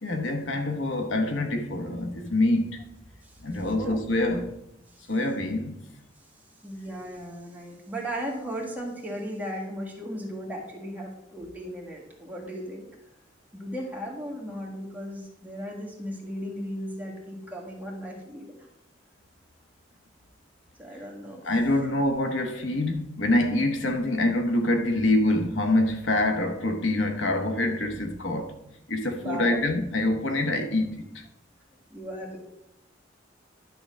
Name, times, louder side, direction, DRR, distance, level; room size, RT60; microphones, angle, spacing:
voice 1, 0.0-2.8 3.4-4.5 5.1-5.8 21.4-28.6 28.9-31.2, left 1 dB, 75° left, 1.2 m, -25 dB
voice 2, 3.8-4.1 4.9-5.1 6.6-12.9 13.5-18.5 20.8-21.4 29.1-29.6 31.9-32.4, equal, 10° right, 1.8 m, -36 dB
10.5 x 3.9 x 6.2 m
head